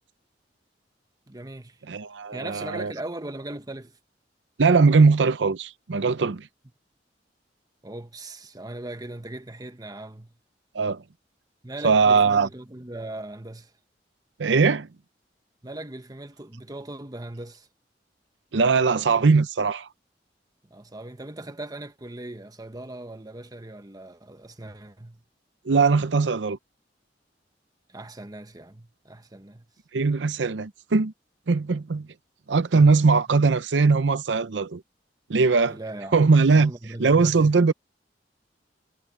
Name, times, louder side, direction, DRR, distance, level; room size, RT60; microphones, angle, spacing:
voice 1, 1.3-1.8 2.3-4.0 7.8-10.3 11.6-13.7 15.6-17.7 20.7-25.2 27.9-29.7 32.7-33.2 35.7-37.5, right 2 dB, 20° right, 1.3 m, -39 dB
voice 2, 1.9-2.9 4.6-6.5 10.7-11.0 11.8-12.5 14.4-14.9 18.5-19.9 25.6-26.6 29.9-31.1 31.5-32.1 32.5-34.8 35.3-35.8 36.1-36.7 37.0-37.7, right 4 dB, 85° right, 0.6 m, -20 dB
head